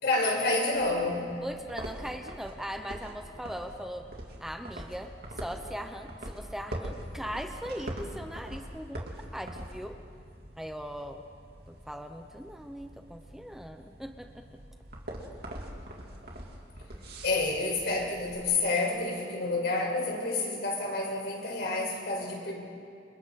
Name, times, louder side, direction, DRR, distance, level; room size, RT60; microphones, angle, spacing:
voice 1, 0.0-1.2 17.2-22.5, left 2 dB, 65° left, -1 dB, 5.3 m, -29 dB
sound 1, 0.7-18.4, right 1 dB, 60° right, 3.3 m, -43 dB
voice 2, 1.4-4.0 4.4-9.1 9.3-10.0 10.6-11.2 11.7-14.4 16.9-17.0 17.3-17.4, equal, ahead, 5 dB, 0.9 m, -39 dB
29.0 x 28.0 x 4.3 m, 2.3 s
head